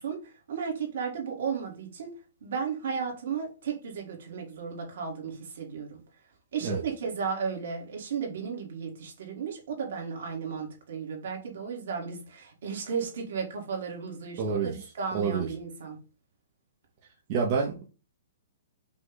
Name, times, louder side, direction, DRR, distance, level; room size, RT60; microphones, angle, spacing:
voice 1, 0.0-2.1 2.4-6.0 6.5-14.6 15.0-16.0, right 6 dB, 55° right, 1.6 m, -34 dB
voice 2, 14.4-14.7 15.1-15.5 17.3-17.9, right 5 dB, 30° right, 0.6 m, -28 dB
5.2 x 2.2 x 3.8 m
hypercardioid pair, 180°, 0 cm